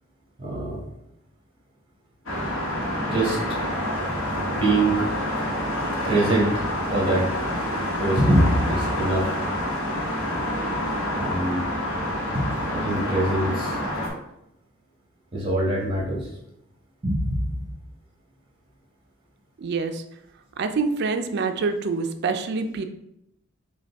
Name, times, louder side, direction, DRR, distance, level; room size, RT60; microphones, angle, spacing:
voice 1, 0.4-0.8 3.0-3.4 4.5-5.1 6.0-6.6 6.9-7.3 8.0-9.3 11.2-11.7 12.3-13.8 15.3-16.3 17.0-17.6, right 1 dB, 25° right, -4 dB, 1.2 m, -23 dB
sound 1, 2.3-14.1, left 1 dB, 75° left, 1.0 m, -27 dB
voice 2, 19.6-20.0 20.6-22.8, right 4 dB, 55° right, 8 dB, 0.4 m, -26 dB
5.1 x 2.2 x 3.4 m, 0.82 s
head